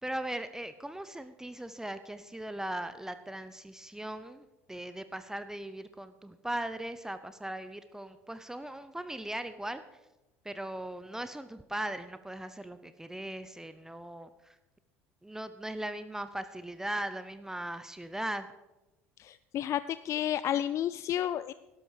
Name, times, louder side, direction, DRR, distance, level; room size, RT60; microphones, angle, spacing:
voice 1, 0.0-9.8 10.4-14.6 15.2-18.5, right 1 dB, 5° right, 11 dB, 0.7 m, -39 dB
voice 2, 19.2-21.5, left 11 dB, 45° left, 15 dB, 0.4 m, -31 dB
12.0 x 12.0 x 4.9 m, 1.0 s
hypercardioid pair, 65°, 7 cm